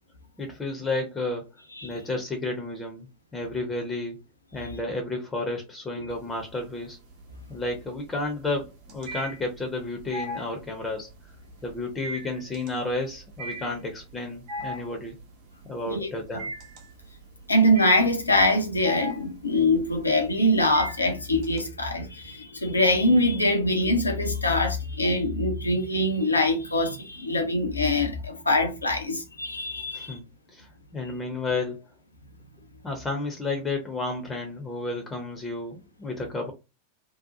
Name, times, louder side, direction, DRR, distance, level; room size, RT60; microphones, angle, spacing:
voice 1, 0.4-1.4 1.8-3.1 3.3-4.2 4.5-7.0 7.5-11.1 11.6-15.1 15.6-16.5 29.9-30.2 30.5-31.8 32.8-36.5, left 2 dB, 15° left, 0.6 m, -32 dB
sound 1, 6.1-6.7 7.1-21.6, right 1 dB, 45° right, 0.8 m, -38 dB
voice 2, 17.5-30.2, left 1 dB, 80° left, 0.6 m, -23 dB
2.7 x 2.1 x 2.6 m
figure-of-eight pair, 90°, 0 cm